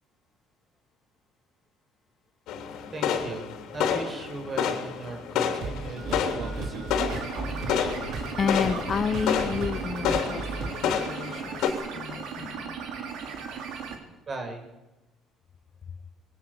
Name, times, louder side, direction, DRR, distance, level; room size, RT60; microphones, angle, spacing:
sound 1, 2.5-11.7, left 8 dB, 75° left, 3.2 m, -30 dB
voice 1, 2.9-6.9 14.3-14.6, right 3 dB, 35° right, 5 dB, 6.0 m, -38 dB
sound 2, 5.6-11.0, right 3 dB, 60° right, 3.8 m, -36 dB
sound 3, 6.0-14.0, right 6 dB, 75° right, 4.1 m, -37 dB
voice 2, 8.4-12.8, left 6 dB, 40° left, 10 dB, 1.5 m, -31 dB
21.0 x 18.5 x 8.5 m, 1.0 s
cardioid pair, 95°, 0 cm